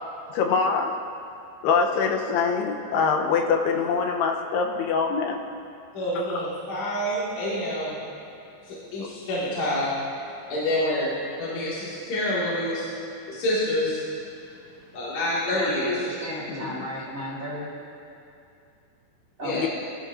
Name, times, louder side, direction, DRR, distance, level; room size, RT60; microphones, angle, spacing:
voice 1, 0.3-1.0 1.6-5.4 6.2-6.4 9.0-9.1 16.5-16.9 19.5-19.7, left 5 dB, 85° left, 2 dB, 3.0 m, -24 dB
voice 2, 5.9-8.0 8.7-9.9 10.5-11.1 11.4-12.9 13.3-14.0 14.9-15.9 19.4-19.7, left 1 dB, 45° left, -8 dB, 3.2 m, -27 dB
voice 3, 15.5-17.7 19.4-19.7, left 1 dB, 30° right, -7 dB, 1.7 m, -33 dB
21.5 x 12.5 x 2.7 m, 2.5 s
omnidirectional pair, 4.6 m